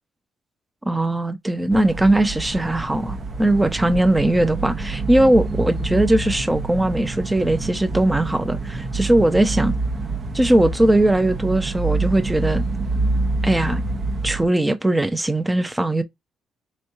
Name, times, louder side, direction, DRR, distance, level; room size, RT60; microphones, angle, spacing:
voice 1, 0.9-9.8 10.3-12.6 13.4-13.8 14.2-16.0, right 1 dB, 10° right, 0.7 m, -19 dB
sound 1, 1.7-14.5, right 3 dB, 45° right, 1.0 m, -27 dB
4.5 x 3.2 x 2.6 m
cardioid pair, 90°, 0 cm